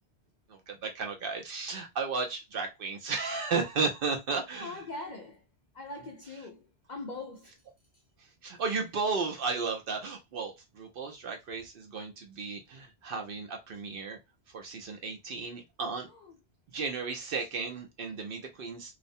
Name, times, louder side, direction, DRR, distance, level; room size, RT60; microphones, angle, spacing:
voice 1, 0.5-4.8 8.4-14.2 14.5-16.1 16.7-18.9, right 4 dB, 60° right, 0.7 m, -34 dB
voice 2, 4.6-5.4 5.7-7.6 16.0-16.4, left 2 dB, 55° left, 0.5 m, -42 dB
2.4 x 2.0 x 2.6 m
omnidirectional pair, 1.2 m